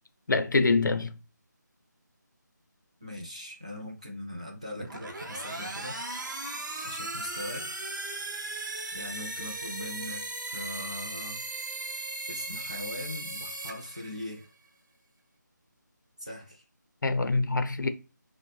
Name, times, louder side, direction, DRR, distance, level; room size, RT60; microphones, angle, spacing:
voice 1, 0.3-1.1 17.0-17.9, left 3 dB, 75° left, 0.5 m, -25 dB
voice 2, 3.0-6.0 6.8-7.8 8.9-11.4 12.3-14.5 16.2-16.6, left 1 dB, 20° right, 0.3 m, -40 dB
sound 1, 4.7-14.5, right 2 dB, 75° right, 0.7 m, -37 dB
2.6 x 2.1 x 3.1 m
figure-of-eight pair, 180°, 10 cm